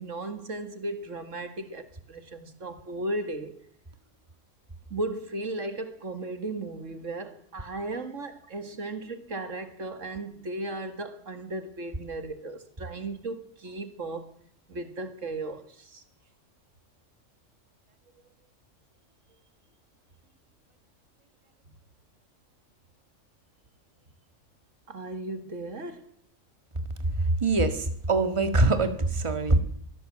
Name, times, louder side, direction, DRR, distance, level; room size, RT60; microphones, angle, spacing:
voice 1, 0.0-3.6 4.9-14.3 14.7-16.0 24.9-26.1, right 2 dB, 75° right, 2.3 m, -36 dB
voice 2, 27.2-29.6, right 2 dB, 25° right, 1.7 m, -23 dB
24.0 x 16.0 x 7.6 m
omnidirectional pair, 1.3 m